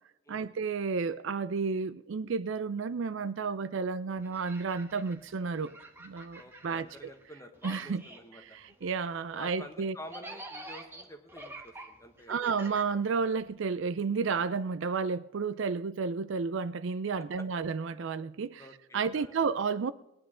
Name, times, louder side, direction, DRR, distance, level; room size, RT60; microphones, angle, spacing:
voice 1, 0.3-7.1 7.6-8.0 8.4-10.0 12.3-18.7 18.9-19.9, right 5 dB, 60° right, 0.4 m, -32 dB
sound 1, 4.2-7.3 7.5-13.5, right 2 dB, 10° right, 1.1 m, -48 dB
voice 2, 6.4-8.6 9.3-12.3 17.4-17.5 18.6-19.4, left 1 dB, 15° left, 1.2 m, -49 dB
19.5 x 10.5 x 3.8 m
head